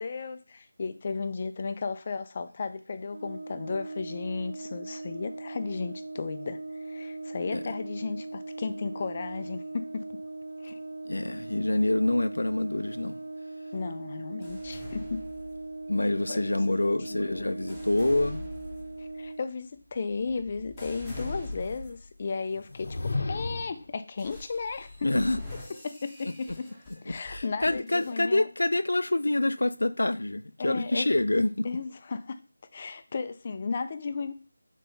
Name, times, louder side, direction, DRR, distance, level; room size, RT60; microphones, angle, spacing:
voice 1, 0.0-10.1 10.6-10.8 13.7-15.2 16.3-17.5 19.0-23.0 23.3-25.1 25.5-26.7 27.0-28.5 30.6-31.2 31.6-32.4 32.7-34.3, left 4 dB, 25° left, 0.4 m, -35 dB
Brass instrument, 3.1-19.5, right 2 dB, 85° right, 0.4 m, -40 dB
voice 2, 11.0-13.2 15.9-18.4 25.0-25.4 27.1-31.7, left 2 dB, 85° left, 0.5 m, -26 dB
sound 1, 14.4-16.0 16.7-22.2 22.7-23.1 24.2-28.2, left 1 dB, ahead, 1.0 m, -43 dB
sound 2, 22.5-23.9, left 3 dB, 45° left, 0.8 m, -32 dB
5.6 x 4.1 x 4.1 m
figure-of-eight pair, 175°, 0 cm